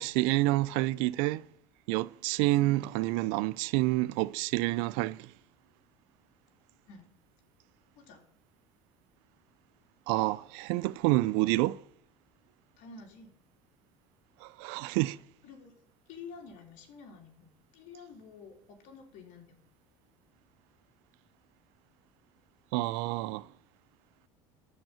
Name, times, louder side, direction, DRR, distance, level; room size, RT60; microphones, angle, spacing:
voice 1, 0.0-1.4 1.9-5.3 10.1-11.8 14.4-15.2 22.7-23.5, right 19 dB, 75° right, 0.5 m, -28 dB
voice 2, 12.8-13.3 15.4-15.8 16.1-19.7, left 5 dB, 70° left, 3.3 m, -50 dB
12.5 x 5.4 x 8.8 m
supercardioid pair, 90°, 14 cm